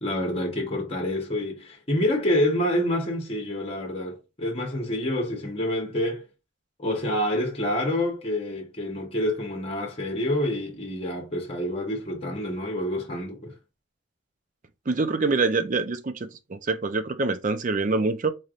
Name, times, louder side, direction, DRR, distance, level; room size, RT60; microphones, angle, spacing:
voice 1, 0.0-6.3 6.8-13.5, left 1 dB, 30° left, 1.1 m, -27 dB
voice 2, 14.9-18.3, right 3 dB, 40° right, 0.5 m, -25 dB
4.1 x 3.3 x 2.5 m
head